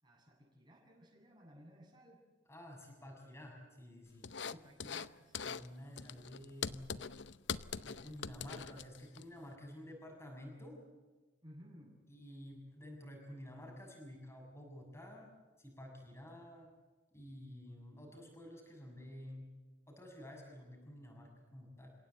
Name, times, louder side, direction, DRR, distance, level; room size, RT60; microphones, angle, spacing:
voice 1, 0.0-2.2 4.5-5.9 11.4-12.0, equal, 25° right, -1 dB, 7.7 m, -58 dB
voice 2, 2.5-4.3 5.4-6.9 7.8-10.8 12.1-15.3 15.6-16.7 17.1-19.5 19.9-21.9, left 1 dB, 15° left, 0 dB, 6.6 m, -51 dB
sound 1, 4.2-5.1 5.3-5.7 6.0-9.2, left 6 dB, 65° left, 0.7 m, -42 dB
29.0 x 17.0 x 8.3 m, 1.3 s
head